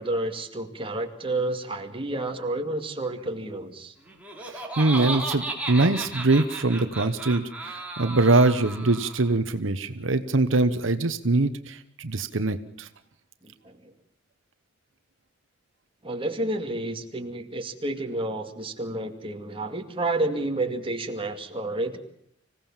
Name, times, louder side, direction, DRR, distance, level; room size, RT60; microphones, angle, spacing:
voice 1, 0.0-3.9 13.4-13.9 16.0-22.0, right 2 dB, 30° right, 4 dB, 2.4 m, -30 dB
Laughter, 4.1-9.3, right 2 dB, 5° right, 3.3 m, -34 dB
voice 2, 4.4-12.9, right 2 dB, 80° right, 10 dB, 1.1 m, -23 dB
26.0 x 17.0 x 7.3 m, 0.71 s
head